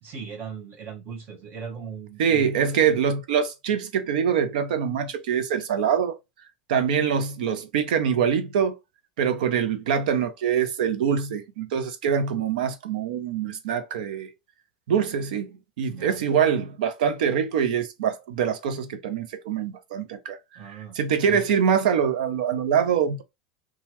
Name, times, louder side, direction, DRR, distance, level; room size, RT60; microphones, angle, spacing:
voice 1, 0.0-3.0 15.9-16.2 20.6-21.0 21.2-21.5, right 6 dB, 45° right, 1.0 m, -38 dB
voice 2, 2.2-6.2 6.7-8.7 9.2-14.3 14.9-20.4 20.6-23.2, right 7 dB, 75° right, 0.7 m, -24 dB
2.8 x 2.4 x 3.1 m
hypercardioid pair, 100°, 5 cm